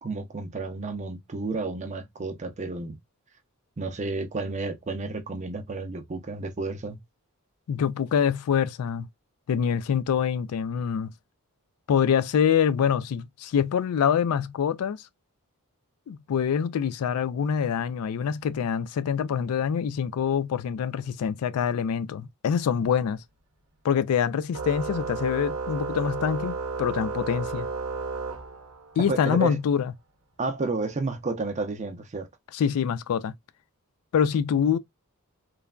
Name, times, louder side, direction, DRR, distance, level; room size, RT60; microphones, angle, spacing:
voice 1, 0.0-3.0 3.8-7.0 29.0-29.6 30.4-32.3, right 3 dB, 30° right, 0.5 m, -31 dB
voice 2, 7.7-9.1 9.5-11.1 11.9-15.0 16.1-23.2 23.8-27.7 29.0-29.9 32.5-33.3 34.1-34.8, left 7 dB, 75° left, 0.3 m, -25 dB
Organ, 24.5-29.1, right 4 dB, 65° right, 0.7 m, -33 dB
3.1 x 2.2 x 2.3 m
head